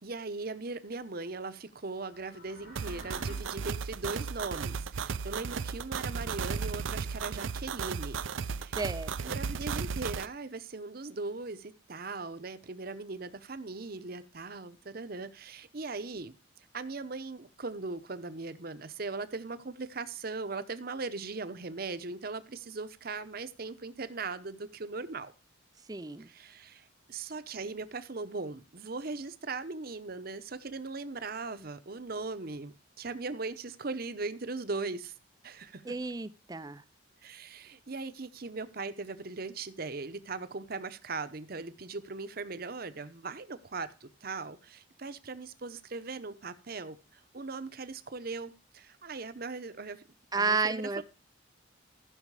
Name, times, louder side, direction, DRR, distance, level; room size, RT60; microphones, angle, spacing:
voice 1, 0.0-8.2 8.5-8.8 9.2-16.3 16.7-25.3 26.2-35.1 35.4-35.8 37.2-50.0 50.4-51.0, right 3 dB, 50° right, 0.8 m, -39 dB
sound 1, 2.0-3.3, left 1 dB, 65° left, 4.2 m, -49 dB
sound 2, 2.8-10.3, right 5 dB, 75° right, 0.5 m, -35 dB
voice 2, 8.8-9.3 25.9-26.3 35.8-36.8 50.3-51.0, right 4 dB, 20° right, 0.4 m, -32 dB
14.5 x 6.3 x 4.8 m
head